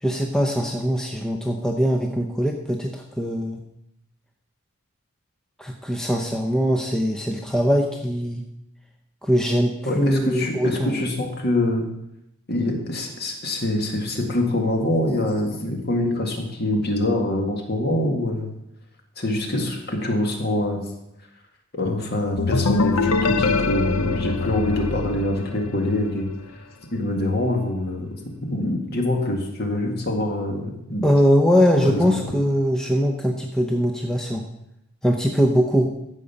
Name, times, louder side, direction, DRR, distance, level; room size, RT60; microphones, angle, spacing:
voice 1, 0.0-3.6 5.6-8.4 9.2-11.0 31.0-34.4 35.0-35.9, equal, 5° left, 2 dB, 0.7 m, -21 dB
voice 2, 9.9-11.9 12.5-18.5 19.2-20.8 21.8-26.3 26.9-28.1 28.4-31.0 31.8-32.1, left 1 dB, 45° left, 2 dB, 2.0 m, -24 dB
sound 1, 22.4-26.1, left 4 dB, 80° left, 0.7 m, -24 dB
14.0 x 5.4 x 7.1 m, 0.84 s
head